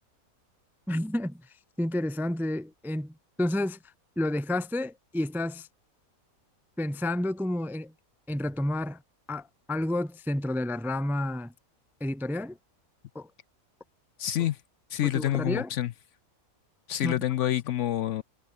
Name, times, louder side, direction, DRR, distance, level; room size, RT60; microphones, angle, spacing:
voice 1, 0.9-1.5 1.8-3.8 4.2-5.7 6.8-7.9 8.3-9.0 9.3-11.5 12.0-12.6 13.1-13.3 15.0-15.7 17.0-17.2, left 1 dB, ahead, 0.5 m, -30 dB
voice 2, 14.2-14.6 14.9-15.9 16.9-18.2, left 12 dB, 65° left, 0.8 m, -27 dB
omnidirectional pair, 1.5 m